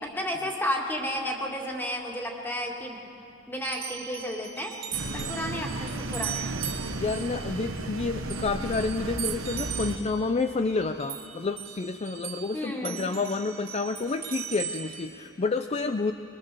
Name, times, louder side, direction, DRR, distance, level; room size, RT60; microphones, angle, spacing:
voice 1, 0.0-3.0 3.5-4.7 5.1-6.6 12.5-13.1, equal, 10° left, 0 dB, 2.2 m, -32 dB
sound 1, 3.6-12.5 12.8-15.1, right 9 dB, 65° right, 2.2 m, -38 dB
sound 2, 4.9-10.0, right 2 dB, 85° right, 1.3 m, -34 dB
voice 2, 5.0-5.4 6.9-16.1, left 3 dB, 30° left, 9 dB, 0.5 m, -29 dB
22.5 x 22.5 x 6.9 m, 3.0 s
head